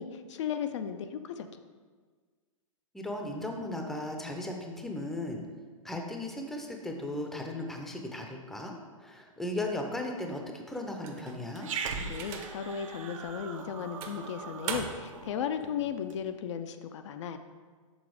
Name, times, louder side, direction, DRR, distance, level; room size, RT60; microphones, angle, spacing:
voice 1, 0.0-1.5 12.1-17.4, left 8 dB, 60° left, 8 dB, 0.5 m, -35 dB
voice 2, 2.9-5.4 5.8-8.7 9.0-11.7, left 1 dB, ahead, 2 dB, 0.6 m, -36 dB
sound 1, 11.0-12.8 13.3-13.4 14.0-15.2, right 6 dB, 35° right, 0.8 m, -41 dB
Growling, 11.6-16.2, right 5 dB, 70° right, 0.8 m, -40 dB
6.3 x 4.0 x 4.7 m, 1.5 s
hypercardioid pair, 125°, 17 cm